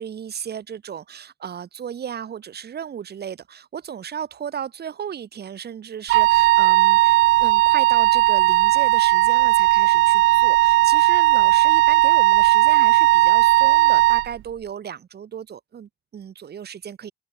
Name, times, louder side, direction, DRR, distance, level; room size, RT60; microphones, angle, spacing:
voice 1, 0.0-17.1, right 8 dB, 55° right, 3.6 m, -35 dB
Wind instrument woodwind instrument, 6.1-14.3, right 19 dB, 90° right, 0.4 m, -16 dB
open air
cardioid pair, 90°, 20 cm